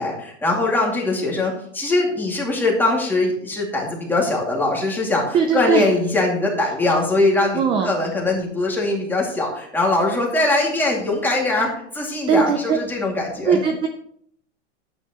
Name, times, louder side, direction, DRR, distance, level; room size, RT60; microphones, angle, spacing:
voice 1, 0.0-13.6, left 2 dB, 5° left, -2 dB, 2.4 m, -21 dB
voice 2, 5.3-5.9 7.5-7.9 12.3-12.8 13.4-13.9, right 6 dB, 15° right, 5 dB, 0.4 m, -19 dB
11.5 x 9.4 x 3.1 m, 0.64 s
supercardioid pair, 155°, 36 cm